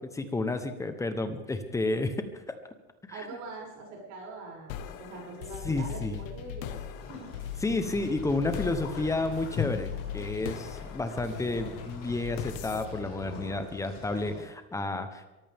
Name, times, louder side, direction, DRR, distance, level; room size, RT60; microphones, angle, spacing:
voice 1, 0.2-2.5 3.1-3.2 5.6-6.2 7.6-15.2, left 2 dB, 5° left, 9 dB, 0.9 m, -31 dB
voice 2, 3.1-7.3, right 3 dB, 40° right, -2 dB, 6.7 m, -43 dB
sound 1, 4.7-14.1, left 9 dB, 55° left, 1.5 m, -40 dB
sound 2, 6.9-14.4, left 5 dB, 30° left, 7.0 m, -41 dB
23.0 x 14.5 x 3.6 m, 1.1 s
supercardioid pair, 160°, 45 cm